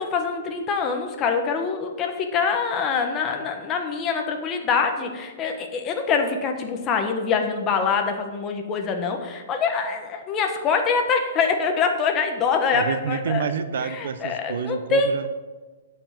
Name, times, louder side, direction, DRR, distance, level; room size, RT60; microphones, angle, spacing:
voice 1, 0.0-13.4 13.8-15.2, left 5 dB, 20° left, 4 dB, 1.3 m, -24 dB
voice 2, 12.7-15.3, right 6 dB, 70° right, 12 dB, 0.9 m, -28 dB
8.2 x 7.8 x 7.3 m, 1.3 s
hypercardioid pair, 160°, 0 cm